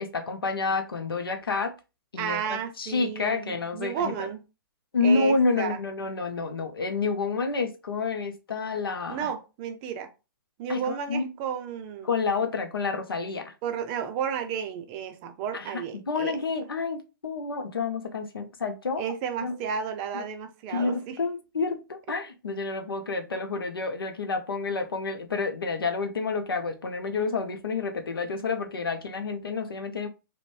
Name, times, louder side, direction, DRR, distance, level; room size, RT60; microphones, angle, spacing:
voice 1, 0.0-1.7 2.1-4.3 4.9-9.3 10.7-11.3 12.0-13.5 15.5-19.1 19.4-19.6 20.1-20.2 20.7-30.1, left 4 dB, 85° left, 0.5 m, -29 dB
voice 2, 2.2-4.4 5.0-5.8 9.1-10.1 10.6-12.1 13.6-16.4 19.0-21.2, right 7 dB, 30° right, 0.4 m, -32 dB
2.5 x 2.1 x 3.1 m
hypercardioid pair, 125°, 12 cm